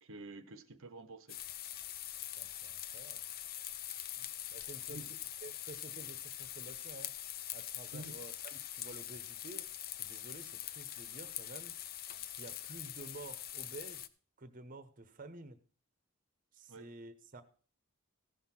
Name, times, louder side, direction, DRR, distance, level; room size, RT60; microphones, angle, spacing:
voice 1, 0.0-1.4 4.2-4.3 4.9-5.1 7.9-8.2 16.7-16.9, right 2 dB, 65° right, 9 dB, 0.8 m, -49 dB
sound 1, 1.3-14.1, left 12 dB, 45° left, 0.5 m, -44 dB
voice 2, 2.4-3.3 4.5-5.0 5.4-7.2 7.5-11.7 12.3-14.1 14.4-15.6 16.5-17.4, right 2 dB, 40° right, 11 dB, 0.9 m, -51 dB
15.0 x 5.8 x 5.9 m, 0.42 s
head